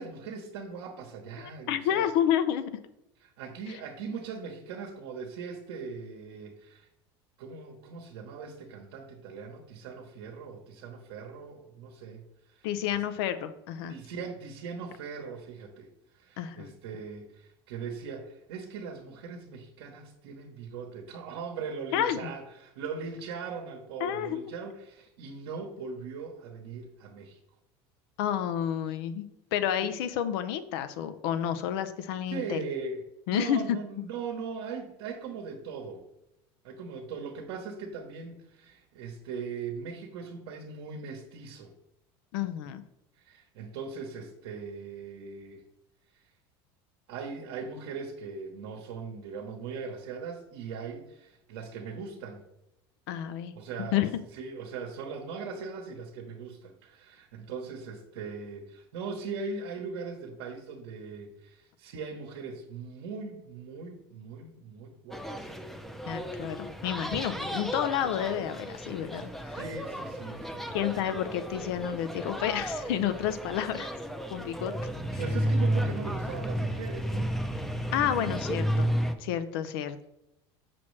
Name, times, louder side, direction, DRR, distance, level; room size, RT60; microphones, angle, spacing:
voice 1, 0.0-2.1 3.2-6.9 7.4-13.0 13.9-27.4 29.8-29.9 32.3-33.0 33.3-36.0 36.6-41.7 43.2-45.6 46.1-46.3 47.1-52.4 53.5-54.0 54.3-65.5 69.5-70.8 75.2-77.4, right 5 dB, 85° right, 2 dB, 1.0 m, -40 dB
voice 2, 1.7-2.8 12.6-13.9 16.4-16.7 21.9-22.3 24.0-24.4 28.2-32.6 33.3-33.6 42.3-42.8 53.1-53.5 53.9-54.1 66.0-69.3 70.7-73.9 74.3-74.7 77.9-78.9 79.2-80.1, left 10 dB, 80° left, 11 dB, 0.6 m, -30 dB
sound 1, 65.1-79.2, equal, ahead, 0.6 m, -33 dB
6.0 x 6.0 x 3.2 m, 0.86 s
supercardioid pair, 110°, 13 cm